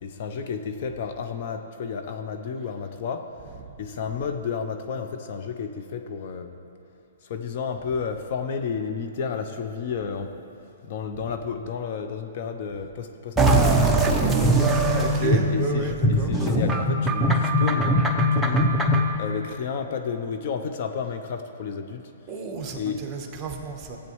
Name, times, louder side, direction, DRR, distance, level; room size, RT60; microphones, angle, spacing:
voice 1, 0.0-3.3 3.8-6.6 7.2-10.4 10.8-14.4 15.2-18.0 18.3-18.8 19.2-22.0 22.7-23.0, left 6 dB, 50° left, 7 dB, 0.6 m, -32 dB
sound 1, 13.4-19.2, right 1 dB, 5° right, 0.6 m, -21 dB
voice 2, 15.0-16.3 22.3-24.0, right 4 dB, 20° right, 2 dB, 1.1 m, -31 dB
15.5 x 8.2 x 3.1 m, 2.8 s
hypercardioid pair, 150°, 0 cm